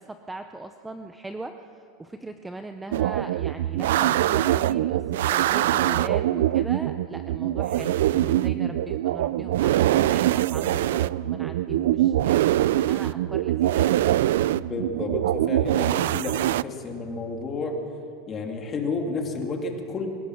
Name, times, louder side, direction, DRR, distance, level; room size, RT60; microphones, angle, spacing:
voice 1, 0.0-5.0 5.3-14.0, right 2 dB, 5° right, 7 dB, 0.6 m, -39 dB
sound 1, 2.9-16.6, right 13 dB, 80° right, 0.4 m, -23 dB
voice 2, 14.6-17.8 18.3-20.1, left 3 dB, 20° left, 2 dB, 2.4 m, -31 dB
26.5 x 16.5 x 6.4 m, 2.5 s
supercardioid pair, 165°, 0 cm